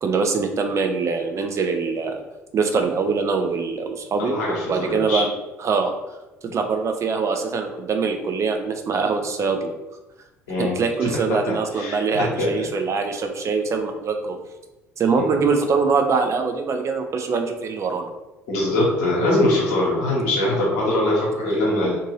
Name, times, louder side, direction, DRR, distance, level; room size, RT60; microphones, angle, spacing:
voice 1, 0.0-2.2 2.5-4.3 4.7-5.3 5.6-5.9 6.5-9.7 10.6-14.4 15.0-18.1, right 4 dB, 40° right, 5 dB, 0.5 m, -23 dB
voice 2, 4.2-5.2 10.5-10.7 11.3-11.4 11.7-12.5 15.1-15.2 18.5-22.0, left 1 dB, 70° left, -4 dB, 1.1 m, -22 dB
2.6 x 2.6 x 3.1 m, 1.0 s
figure-of-eight pair, 55°, 8 cm